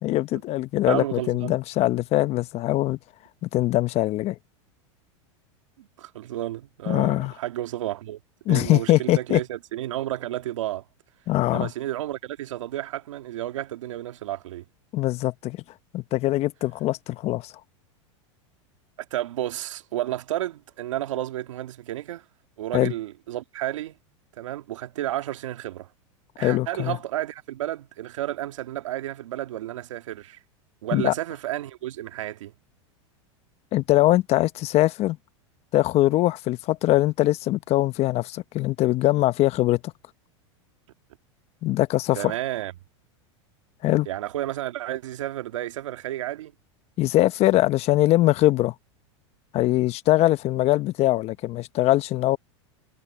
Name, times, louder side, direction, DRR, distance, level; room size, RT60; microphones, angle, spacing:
voice 1, 0.0-3.0 3.4-4.4 6.9-7.3 8.5-9.4 11.3-11.7 14.9-15.6 15.9-17.5 22.7-22.9 26.4-27.0 30.9-31.1 33.7-35.2 35.7-39.8 41.6-42.2 43.8-44.1 47.0-48.7 49.5-52.4, left 16 dB, 40° left, 1.0 m, -22 dB
voice 2, 0.9-1.6 5.8-8.2 8.5-10.8 11.5-14.7 19.1-22.2 22.6-24.0 24.4-25.9 26.4-30.4 30.8-32.5 42.1-42.7 44.1-46.5, right 14 dB, 80° right, 1.9 m, -31 dB
hypercardioid pair, 115°, 16 cm